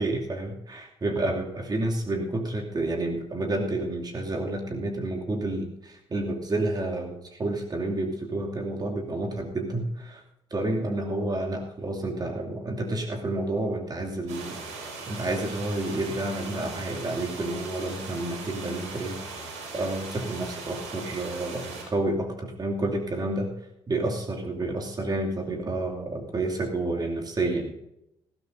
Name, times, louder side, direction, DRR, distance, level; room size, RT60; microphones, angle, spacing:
voice 1, 0.0-10.2 10.5-19.2 19.7-23.5 23.9-27.7, right 2 dB, 30° right, 0 dB, 2.6 m, -30 dB
sound 1, 14.3-21.8, right 3 dB, 65° right, 5.5 m, -39 dB
19.5 x 16.0 x 2.7 m, 0.79 s
figure-of-eight pair, 45°, 13 cm